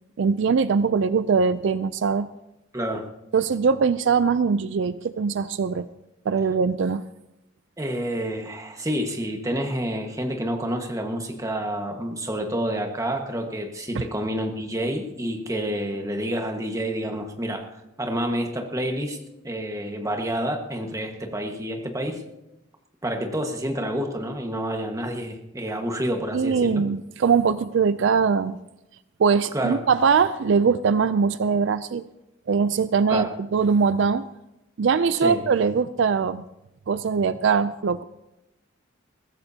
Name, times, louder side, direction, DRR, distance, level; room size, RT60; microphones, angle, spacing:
voice 1, 0.2-2.3 3.3-5.9 6.3-7.0 13.9-14.0 26.3-28.6 29.2-32.0 32.5-34.3 34.8-36.4 36.9-38.0, right 5 dB, 65° right, 14 dB, 0.4 m, -21 dB
voice 2, 2.7-3.1 7.8-17.7 18.0-19.2 19.4-22.2 23.0-26.8 29.5-29.8 33.1-33.3 35.2-35.4, equal, 15° right, 3 dB, 1.5 m, -28 dB
21.0 x 15.0 x 2.8 m, 0.92 s
head